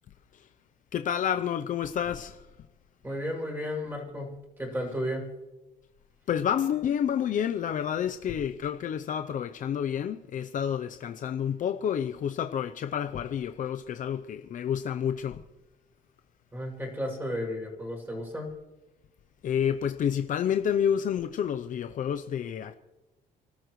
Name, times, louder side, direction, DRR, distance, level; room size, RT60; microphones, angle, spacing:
voice 1, 0.9-2.4 6.3-15.4 19.4-22.7, left 8 dB, 50° left, 0.7 m, -29 dB
voice 2, 3.0-5.3 16.5-18.5, equal, 10° right, 6.6 m, -33 dB
28.5 x 13.0 x 3.2 m
cardioid pair, 110°, 17 cm